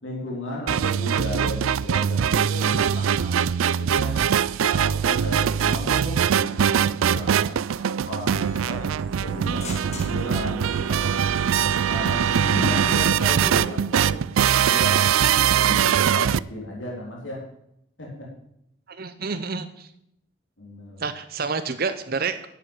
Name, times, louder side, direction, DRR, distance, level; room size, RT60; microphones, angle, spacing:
voice 1, 0.0-4.2 4.6-8.8 9.2-11.2 11.8-15.0 15.5-17.4 18.0-18.3 20.6-21.0, left 1 dB, 65° left, -2 dB, 3.4 m, -34 dB
sound 1, 0.7-16.4, right 8 dB, 90° right, 0.4 m, -22 dB
sound 2, 8.3-12.3, left 4 dB, 35° left, 2.1 m, -45 dB
voice 2, 18.9-19.9 21.0-22.5, right 4 dB, 50° right, 11 dB, 0.8 m, -29 dB
11.0 x 8.1 x 9.0 m, 0.77 s
head